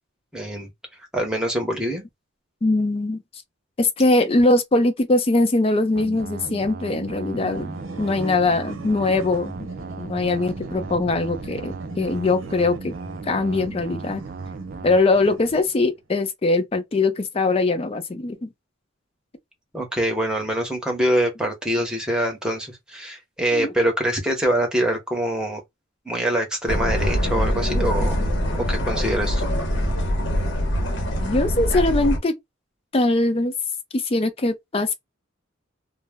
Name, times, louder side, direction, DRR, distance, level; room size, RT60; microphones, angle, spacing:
voice 1, 0.3-0.7 1.1-2.0 19.7-25.6 26.1-28.2 28.5-29.5, right 1 dB, 5° right, 0.8 m, -24 dB
voice 2, 2.6-3.2 3.8-7.7 8.0-9.7 10.0-13.0 13.2-14.2 14.8-18.5 23.5-23.7 31.2-32.3 32.9-33.5 33.9-34.9, left 2 dB, 30° left, 0.4 m, -21 dB
sound 1, 6.0-15.0, right 4 dB, 45° right, 0.3 m, -36 dB
sound 2, 7.3-15.9, right 2 dB, 80° right, 0.9 m, -40 dB
sound 3, 26.7-32.2, equal, 60° left, 0.8 m, -23 dB
2.1 x 2.0 x 3.3 m
head